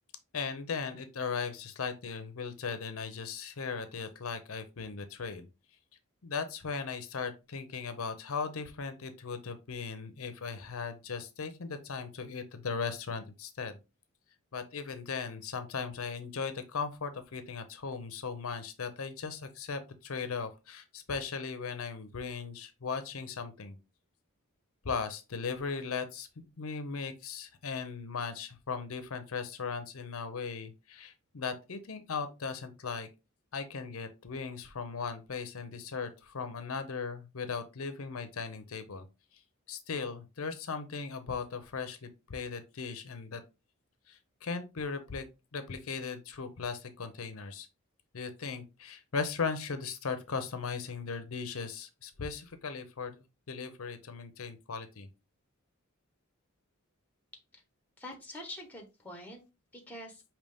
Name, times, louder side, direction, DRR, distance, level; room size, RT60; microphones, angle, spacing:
voice 1, 0.3-5.5 6.2-13.8 14.5-23.8 24.8-26.3 26.6-33.1 33.5-39.1 39.7-43.4 44.1-45.2 45.5-47.7 48.1-55.1, left 5 dB, 70° left, 9 dB, 0.7 m, -38 dB
voice 2, 58.0-59.4 59.7-60.2, left 1 dB, 5° left, 3 dB, 1.1 m, -45 dB
5.4 x 2.9 x 3.4 m, 0.27 s
head